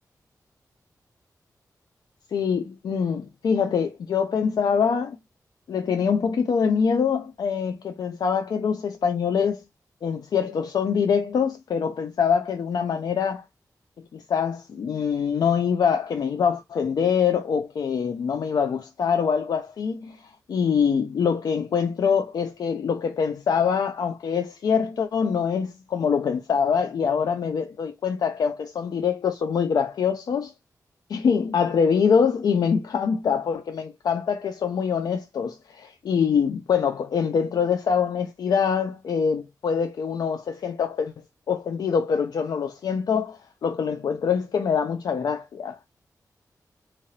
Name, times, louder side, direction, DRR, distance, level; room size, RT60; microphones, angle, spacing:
voice 1, 2.3-5.2 5.7-9.6 10.0-13.4 14.1-30.5 31.1-41.1 41.5-45.8, left 6 dB, 80° left, 0.4 m, -24 dB
3.7 x 2.9 x 2.9 m
wide cardioid pair, 120°, 7 cm